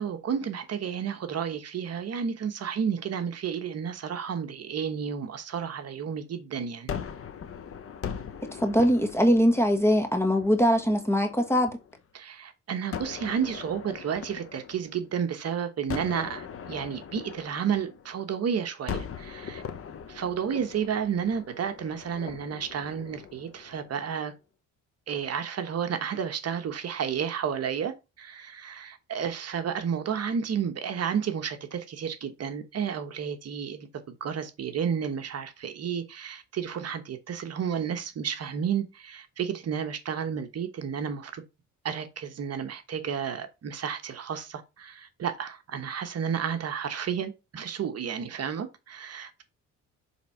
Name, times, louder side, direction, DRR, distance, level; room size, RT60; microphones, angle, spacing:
voice 1, 0.0-6.9 12.1-19.6 20.1-24.3 25.1-41.4 41.8-49.4, right 7 dB, 55° right, 1.1 m, -31 dB
Gunshot gunfire, 6.9-12.0 12.9-15.3 15.9-18.4 18.9-24.1, left 7 dB, 50° left, 1.1 m, -40 dB
voice 2, 8.6-11.8, equal, 10° left, 1.6 m, -22 dB
7.1 x 3.6 x 4.3 m
cardioid pair, 90°, 30 cm